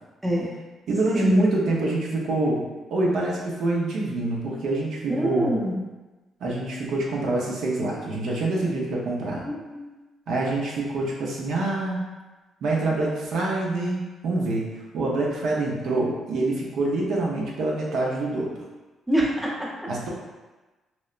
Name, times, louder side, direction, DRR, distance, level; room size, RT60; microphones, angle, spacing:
voice 1, 0.9-2.6 2.9-5.5 6.4-9.5 10.3-12.0 12.6-14.6 14.9-18.5 19.9-20.1, right 2 dB, 75° right, -3 dB, 0.5 m, -26 dB
voice 2, 5.1-5.8 9.5-9.9 19.1-19.7, equal, 10° right, -4 dB, 0.6 m, -25 dB
3.0 x 2.0 x 2.4 m, 1.2 s
cardioid pair, 90°, 0 cm